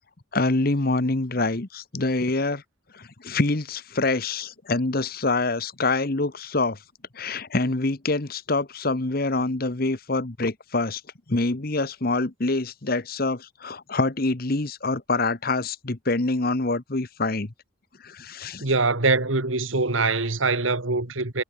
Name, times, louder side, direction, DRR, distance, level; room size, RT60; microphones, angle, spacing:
voice 1, 0.3-2.6 2.9-6.8 7.1-11.0 11.3-17.5 18.0-18.7, left 2 dB, 50° left, 1.2 m, -25 dB
voice 2, 18.6-21.4, right 3 dB, 80° right, 2.3 m, -23 dB
head